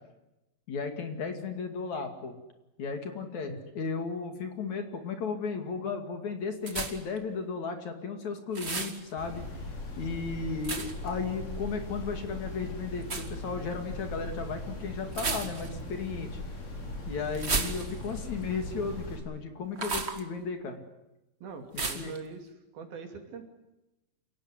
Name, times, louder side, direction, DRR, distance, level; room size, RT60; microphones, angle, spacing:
voice 1, 0.7-2.4 2.8-9.5 10.0-16.4 17.1-20.8 22.0-22.1, left 5 dB, 55° left, 6 dB, 3.5 m, -35 dB
sound 1, 6.7-7.2 8.5-9.0 10.6-11.1 13.0-13.3 15.1-15.8 17.3-18.2 19.8-20.2 21.8-22.2, right 3 dB, 35° right, 1.1 m, -33 dB
sound 2, 9.2-19.2, left 2 dB, 75° left, 7.8 m, -39 dB
voice 2, 21.4-22.5 22.7-23.4, right 5 dB, 75° right, 5 dB, 4.7 m, -42 dB
28.5 x 17.5 x 9.7 m, 0.97 s
omnidirectional pair, 4.3 m